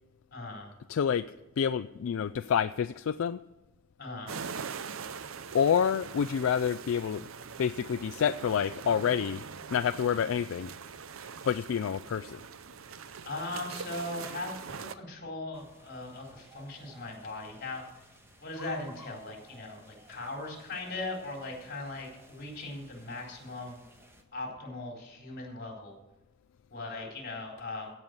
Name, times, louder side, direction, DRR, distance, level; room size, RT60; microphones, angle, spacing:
voice 1, 0.3-0.7 4.0-4.3 13.2-18.0 18.4-23.8 24.3-26.0 26.7-27.9, left 2 dB, 50° left, 0 dB, 4.1 m, -39 dB
voice 2, 0.9-1.3 1.6-3.4 5.5-7.3 7.6-9.4 9.7-10.7 11.5-12.4, left 7 dB, 75° left, 10 dB, 0.3 m, -28 dB
sound 1, 4.3-14.9, right 6 dB, 75° right, 0.6 m, -42 dB
sound 2, 15.5-24.2, right 1 dB, 10° right, 1.3 m, -56 dB
16.0 x 5.5 x 7.9 m, 0.98 s
head